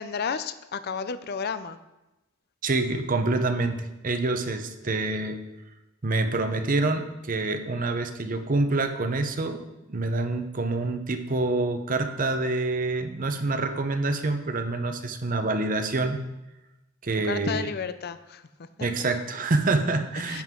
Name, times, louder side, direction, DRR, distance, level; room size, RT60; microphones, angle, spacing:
voice 1, 0.0-1.8 17.2-18.5 20.3-20.4, left 5 dB, 50° left, 12 dB, 0.5 m, -32 dB
voice 2, 2.6-5.4 6.0-9.6 9.9-16.2 17.0-17.7 18.8-20.4, right 2 dB, 45° right, 7 dB, 0.8 m, -26 dB
10.5 x 7.8 x 3.7 m, 1.0 s
head